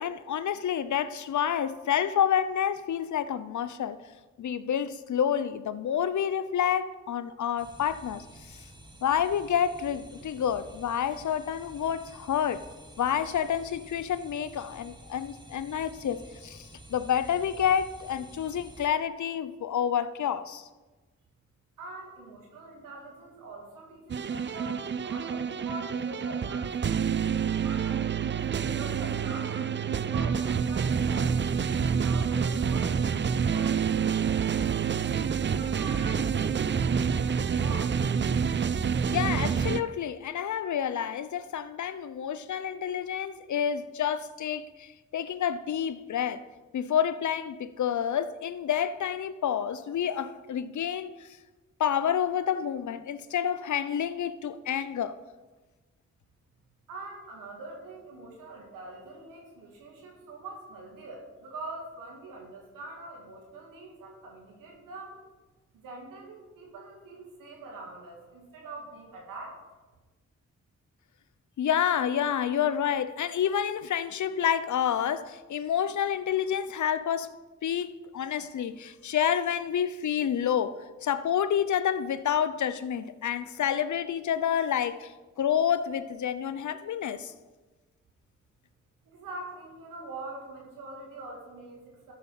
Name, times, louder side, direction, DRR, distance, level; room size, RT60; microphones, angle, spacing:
voice 1, 0.0-4.0 4.4-8.6 9.0-12.6 13.0-20.7 39.1-46.4 46.7-51.3 51.8-55.2 71.6-77.3 77.6-85.1 85.4-87.3, left 9 dB, 65° left, 0.7 m, -29 dB
sound 1, 7.6-18.9, right 1 dB, 15° right, 1.7 m, -50 dB
voice 2, 21.8-27.0 27.6-34.9 35.4-38.0 56.9-65.2 65.7-69.6 89.0-92.1, right 2 dB, 90° right, 2.1 m, -44 dB
sound 2, 24.1-39.8, right 7 dB, 35° right, 0.5 m, -27 dB
13.0 x 5.5 x 5.7 m
supercardioid pair, 40°, 32 cm